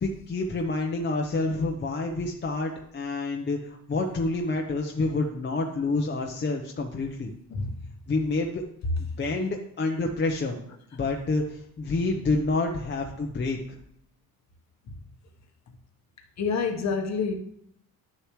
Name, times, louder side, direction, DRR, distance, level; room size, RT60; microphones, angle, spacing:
voice 1, 0.0-7.3 8.1-8.6 9.0-10.6 10.9-13.8, left 3 dB, 30° left, 2 dB, 0.8 m, -28 dB
voice 2, 7.5-7.8 16.4-17.3, left 5 dB, 50° left, 3 dB, 1.2 m, -27 dB
11.0 x 6.7 x 3.1 m, 0.70 s
cardioid pair, 135°, 36 cm